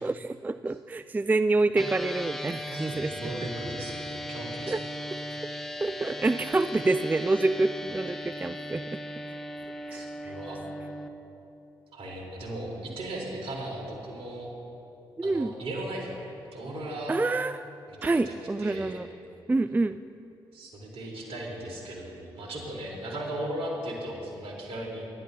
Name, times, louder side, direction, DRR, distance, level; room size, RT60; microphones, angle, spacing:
voice 1, 0.0-3.1 4.7-4.8 5.8-9.0 9.9-10.3 15.2-15.5 17.1-17.5 18.0-19.1 19.5-20.0, right 2 dB, 15° right, 12 dB, 0.3 m, -27 dB
sound 1, 1.7-11.1, equal, 5° left, 1.2 m, -37 dB
voice 2, 2.7-4.8 9.9-10.6 11.9-14.5 15.2-16.2 16.5-17.2 17.9-19.0 20.5-25.1, right 1 dB, 60° right, -2 dB, 3.7 m, -37 dB
25.5 x 11.5 x 2.8 m, 2.8 s
hypercardioid pair, 40°, 11 cm